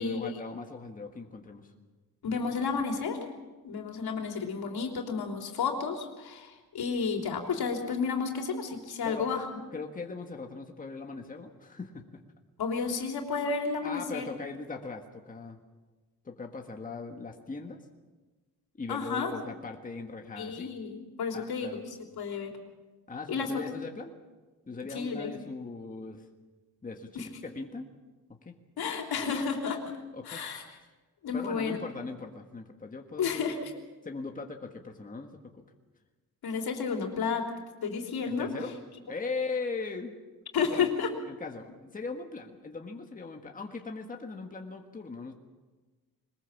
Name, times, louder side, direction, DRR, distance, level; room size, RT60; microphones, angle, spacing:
voice 1, 0.0-1.7 9.0-9.4 9.7-12.0 12.9-13.0 13.8-15.6 16.2-17.8 18.8-20.7 21.3-21.8 23.1-24.1 24.7-26.3 26.8-27.9 28.4-28.5 30.1-30.4 31.3-33.6 34.0-35.6 38.2-38.7 39.0-40.1 40.7-40.9 41.3-45.3, left 4 dB, 20° left, 3 dB, 1.6 m, -39 dB
voice 2, 2.2-3.2 3.6-9.6 12.6-14.3 18.9-19.3 20.4-21.8 22.2-22.5 23.3-23.5 24.9-25.3 27.2-27.3 28.8-29.9 30.3-30.6 31.2-31.8 33.2-33.7 36.4-37.5 37.8-38.5 40.5-41.1, left 5 dB, 80° left, 3 dB, 3.5 m, -31 dB
22.0 x 20.5 x 7.2 m, 1.3 s
wide cardioid pair, 155°, 37 cm